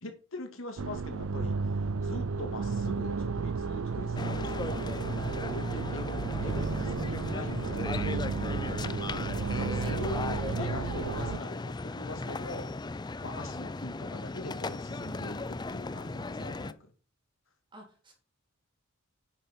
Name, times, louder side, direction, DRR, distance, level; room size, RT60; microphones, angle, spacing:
voice 1, 0.0-5.0 5.5-9.0 9.6-12.7 13.2-16.8, left 2 dB, 65° left, 5 dB, 2.2 m, -42 dB
sound 1, 0.8-11.4, right 4 dB, 75° right, 0.5 m, -33 dB
sound 2, 4.1-16.7, left 3 dB, 20° left, 0.4 m, -36 dB
voice 2, 8.4-8.9 9.8-9.9 17.7-18.1, equal, 25° right, 1 dB, 3.6 m, -51 dB
9.7 x 6.4 x 5.4 m, 0.35 s
head